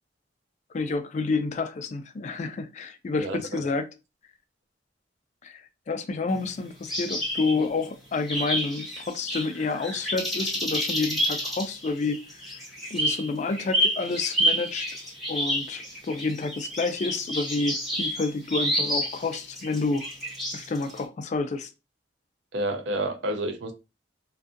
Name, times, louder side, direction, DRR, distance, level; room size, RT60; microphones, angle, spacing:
voice 1, 0.7-3.9 5.4-12.4 12.9-14.9 15.3-20.1 20.5-21.7, left 3 dB, 40° left, 0.3 m, -29 dB
voice 2, 3.2-3.6 22.5-23.7, right 1 dB, 80° right, 0.5 m, -29 dB
sound 1, 6.9-7.8 8.3-21.0, equal, ahead, 1.0 m, -29 dB
2.5 x 2.4 x 2.4 m
head